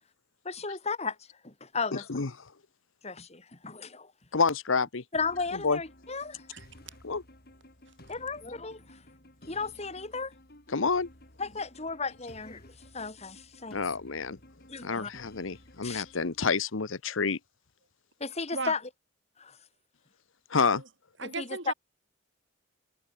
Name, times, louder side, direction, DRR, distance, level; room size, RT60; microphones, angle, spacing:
voice 1, 0.4-1.2 1.4-2.0 3.0-4.1 5.1-6.4 8.1-8.8 9.4-10.3 11.4-13.8 14.7-15.1 15.8-16.0 18.2-18.8 19.4-19.6 21.2-21.5, left 4 dB, 30° left, 2.6 m, -35 dB
voice 2, 4.3-5.0 5.5-5.8 7.0-7.2 10.7-11.1 13.7-14.4 14.8-17.4 20.5-20.8, left 4 dB, 75° left, 1.0 m, -28 dB
sound 1, 5.1-16.6, left 1 dB, 50° left, 7.2 m, -55 dB
voice 3, 6.5-7.0 18.5-18.7 20.7-20.8 21.2-21.7, right 3 dB, 60° right, 6.6 m, -36 dB
head